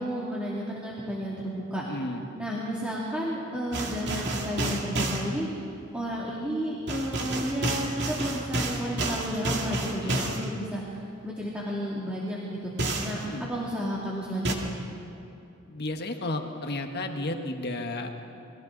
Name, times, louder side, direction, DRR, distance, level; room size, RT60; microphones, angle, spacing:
voice 1, 0.0-1.8 2.3-5.5 5.9-12.7 13.0-13.2 13.5-14.8, equal, 5° right, -7 dB, 2.6 m, -32 dB
voice 2, 1.8-2.2 10.0-10.4 13.2-13.5 15.7-18.1, left 2 dB, 50° left, 4 dB, 1.5 m, -33 dB
sound 1, 3.7-5.3 6.9-10.5 12.8-13.2 14.4-14.5, right 2 dB, 55° right, 2.3 m, -30 dB
29.5 x 22.0 x 4.0 m, 2.7 s
head